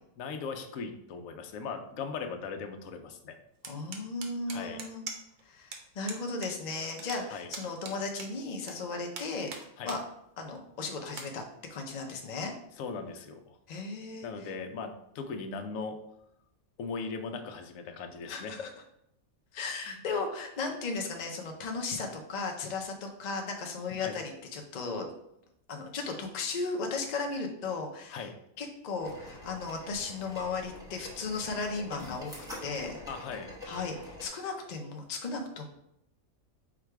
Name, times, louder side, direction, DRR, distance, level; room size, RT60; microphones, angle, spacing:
voice 1, 0.2-3.4 4.5-4.8 7.3-7.5 9.8-9.9 12.8-13.6 14.2-16.0 16.8-18.5 19.9-20.0 23.9-24.2 28.1-28.3 33.1-33.5, left 5 dB, 75° left, 5 dB, 1.0 m, -39 dB
voice 2, 3.6-5.0 5.4-9.5 9.9-10.0 10.4-11.4 11.7-12.5 13.7-14.5 18.3-18.7 19.5-25.1 25.7-28.2 28.6-32.3 32.6-33.0 33.7-35.6, left 4 dB, 55° left, 2 dB, 0.5 m, -36 dB
sound 1, 3.6-5.4 5.7-5.8 6.1-6.5 6.8-8.7 9.1-10.0 10.5-10.6 11.1-11.3, right 5 dB, 75° right, 1.1 m, -42 dB
sound 2, 29.0-34.3, left 1 dB, 5° right, 1.0 m, -45 dB
4.8 x 2.3 x 4.5 m, 0.77 s
omnidirectional pair, 1.5 m